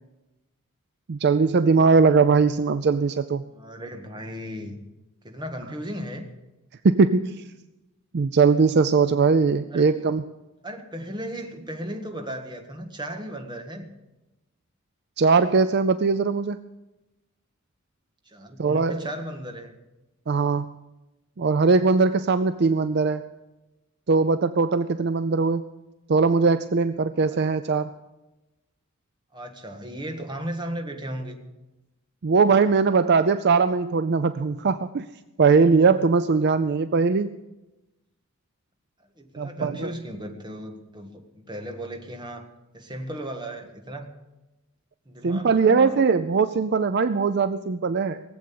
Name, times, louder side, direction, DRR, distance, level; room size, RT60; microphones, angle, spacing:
voice 1, 1.1-3.4 6.8-7.4 8.1-10.2 15.2-16.6 18.6-19.0 20.3-20.7 21.4-23.3 24.1-25.6 26.1-27.9 32.2-35.1 35.4-37.3 39.4-39.9 45.2-48.2, right 4 dB, 50° right, 12 dB, 0.5 m, -20 dB
voice 2, 3.5-4.8 5.2-6.3 9.7-9.9 10.6-13.9 18.3-19.8 29.3-31.4 39.2-42.5 42.7-44.1 45.0-46.0, equal, 20° right, 4 dB, 1.6 m, -35 dB
18.5 x 7.9 x 8.6 m, 1.0 s
head